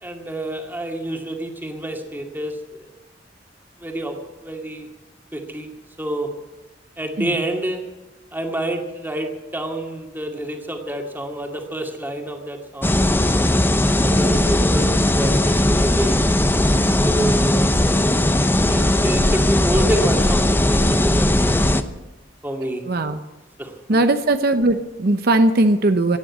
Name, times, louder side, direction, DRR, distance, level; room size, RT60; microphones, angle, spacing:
voice 1, 0.0-2.9 3.8-4.2 4.4-4.9 5.3-5.7 6.0-6.3 7.0-7.8 8.3-13.7 14.0-16.2 17.0-17.7 18.6-21.7 22.4-22.8 23.6-24.1, right 1 dB, 10° right, 3 dB, 2.2 m, -28 dB
sound 1, 12.8-21.8, left 1 dB, 10° left, 0.8 m, -18 dB
voice 2, 22.8-23.2 23.9-26.2, right 2 dB, 60° right, 8 dB, 0.8 m, -19 dB
17.0 x 10.0 x 8.5 m, 1.1 s
head